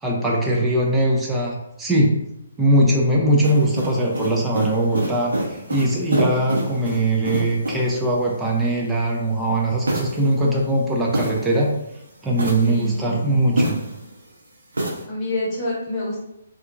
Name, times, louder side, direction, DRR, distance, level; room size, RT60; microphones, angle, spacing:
voice 1, 0.0-2.2 2.6-11.7 12.2-13.8, right 1 dB, 5° right, -4 dB, 0.5 m, -21 dB
sound 1, 3.4-8.0 9.9-11.8 12.3-14.1 14.7-15.0, right 1 dB, 70° right, 0.7 m, -27 dB
voice 2, 12.6-13.4 15.1-16.2, left 1 dB, 20° left, -7 dB, 1.1 m, -28 dB
2.6 x 2.3 x 2.5 m, 0.82 s
figure-of-eight pair, 135°, 0 cm